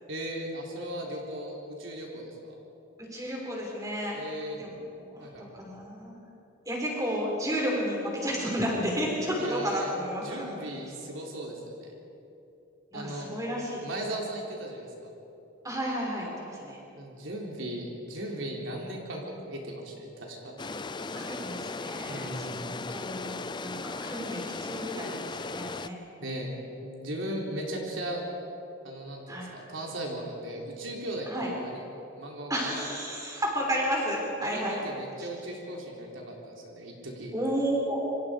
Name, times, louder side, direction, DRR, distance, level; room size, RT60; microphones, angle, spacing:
voice 1, 0.1-2.5 4.1-4.6 5.2-5.5 9.4-9.9 10.2-11.9 12.9-13.3 13.8-14.9 17.0-20.5 22.1-22.6 26.2-26.5 26.8-28.2 28.8-31.8 32.1-32.7 34.4-37.3, right 1 dB, 80° right, -1 dB, 3.8 m, -37 dB
voice 2, 3.0-4.2 4.5-4.8 5.1-6.2 6.7-10.5 12.9-13.8 15.6-16.8 21.1-26.0 27.2-27.4 29.3-29.5 31.3-31.5 32.5-34.8 35.2-35.3 37.3-38.0, equal, 15° right, -3 dB, 5.8 m, -32 dB
sound 1, 20.6-25.9, left 3 dB, 25° left, 0.5 m, -37 dB
28.0 x 25.5 x 5.2 m, 2.9 s
head